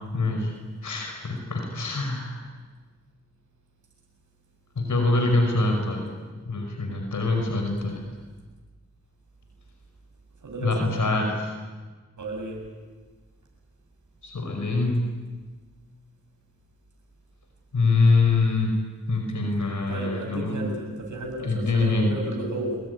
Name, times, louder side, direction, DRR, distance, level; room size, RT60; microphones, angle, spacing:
voice 1, 0.1-0.5 0.8-2.4 4.8-6.1 6.5-8.0 10.6-11.5 14.2-15.0 17.7-18.8 19.1-20.7 21.4-22.1, left 3 dB, 75° left, 3 dB, 5.5 m, -24 dB
voice 2, 10.4-11.0 12.2-12.6 19.9-22.8, right 1 dB, 75° right, 0 dB, 7.6 m, -33 dB
25.5 x 22.0 x 9.6 m, 1.3 s
cardioid pair, 50°, 31 cm